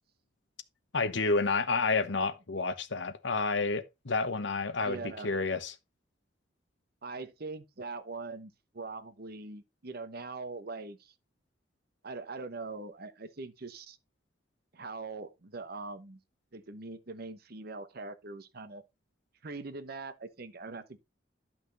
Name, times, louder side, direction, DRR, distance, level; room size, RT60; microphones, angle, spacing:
voice 1, 0.9-5.7, left 3 dB, 70° left, 1.1 m, -30 dB
voice 2, 4.8-5.3 7.0-11.1 12.0-14.0 14.7-16.2 16.5-18.8 19.4-21.0, right 3 dB, 55° right, 1.0 m, -42 dB
11.0 x 5.9 x 3.9 m
head